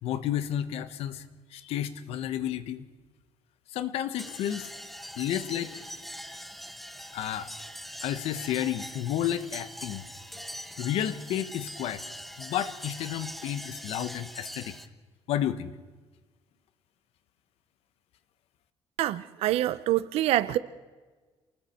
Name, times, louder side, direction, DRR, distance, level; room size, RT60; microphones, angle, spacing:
voice 1, 0.0-2.9 3.7-4.7 5.1-6.0 7.1-7.5 8.0-10.0 10.8-12.0 12.4-14.8 15.3-15.7, left 11 dB, 75° left, 13 dB, 1.3 m, -31 dB
sound 1, 4.2-14.9, equal, ahead, 0.9 m, -42 dB
voice 2, 19.0-20.6, right 14 dB, 80° right, 16 dB, 0.8 m, -26 dB
28.5 x 20.5 x 4.5 m, 1.3 s
cardioid pair, 175°, 10 cm